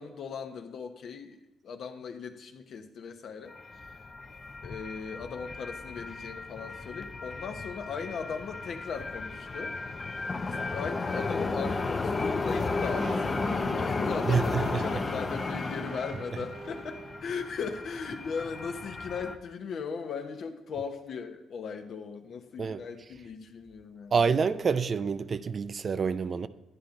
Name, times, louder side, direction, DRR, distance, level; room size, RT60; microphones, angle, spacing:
voice 1, 0.0-4.0 4.6-9.7 10.4-24.1, left 5 dB, 65° left, 0.8 m, -38 dB
sound 1, 3.5-19.4, left 3 dB, 30° left, 0.6 m, -34 dB
sound 2, 12.7-17.2, right 5 dB, 85° right, 1.0 m, -45 dB
voice 2, 14.3-14.9 22.6-22.8 24.1-26.5, right 5 dB, 45° right, 0.4 m, -27 dB
11.0 x 10.0 x 2.6 m
cardioid pair, 90°, 0 cm